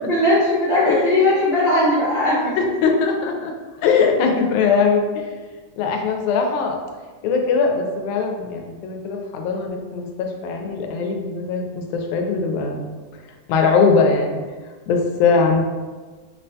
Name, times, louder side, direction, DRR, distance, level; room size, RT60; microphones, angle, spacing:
voice 1, 0.1-2.6, left 1 dB, 65° right, -12 dB, 0.6 m, -18 dB
voice 2, 0.9-1.2 2.6-3.5 3.8-5.2 5.8-6.8 7.2-13.0 13.5-14.4 14.9-15.6, left 5 dB, 85° left, 2 dB, 2.0 m, -20 dB
6.0 x 2.1 x 2.7 m, 1.3 s
omnidirectional pair, 3.4 m